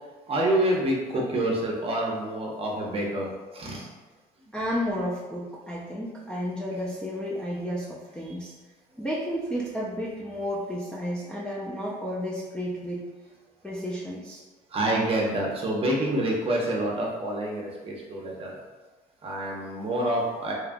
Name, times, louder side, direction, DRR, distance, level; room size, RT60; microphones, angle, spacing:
voice 1, 0.3-3.9 14.7-18.6 19.2-20.5, right 1 dB, 35° right, -2 dB, 0.6 m, -27 dB
voice 2, 4.5-8.5 9.0-13.0 13.6-14.4, equal, 5° left, -6 dB, 0.4 m, -32 dB
2.8 x 2.2 x 2.5 m, 1.2 s
cardioid pair, 110°, 17 cm